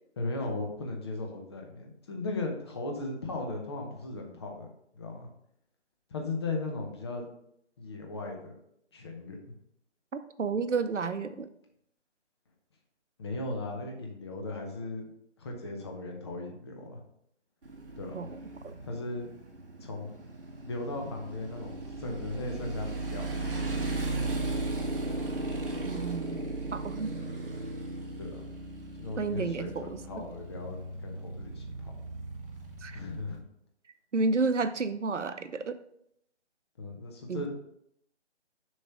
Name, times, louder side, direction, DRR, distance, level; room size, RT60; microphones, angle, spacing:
voice 1, 0.2-4.7 4.9-5.3 6.1-7.3 7.8-8.6 8.9-9.4 13.2-15.0 15.4-17.0 18.0-18.3 18.8-19.3 19.8-20.1 20.6-24.7 28.2-28.5 29.0-31.9 32.9-33.4 36.8-37.5, left 2 dB, 20° left, 1 dB, 0.8 m, -37 dB
voice 2, 10.1-11.5 18.1-18.4 18.6-18.7 25.8-26.4 26.7-27.1 29.2-30.0 32.8-33.0 34.1-35.8 37.3-37.5, right 4 dB, 85° right, 11 dB, 0.7 m, -31 dB
Motorcycle, 17.6-33.4, right 2 dB, 50° right, 1.4 m, -36 dB
6.8 x 3.2 x 5.6 m, 0.73 s
figure-of-eight pair, 150°, 35 cm